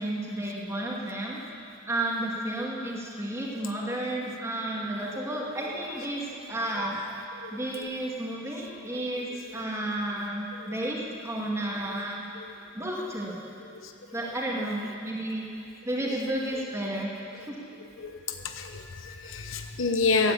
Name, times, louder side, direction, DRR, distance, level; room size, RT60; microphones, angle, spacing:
voice 1, 0.0-1.4 1.9-7.0 7.5-12.2 12.7-13.4 14.1-15.5 15.8-17.6, right 1 dB, 15° right, -3 dB, 2.3 m, -32 dB
voice 2, 18.4-20.3, left 4 dB, 75° left, 6 dB, 1.0 m, -28 dB
15.5 x 10.0 x 8.6 m, 2.6 s
head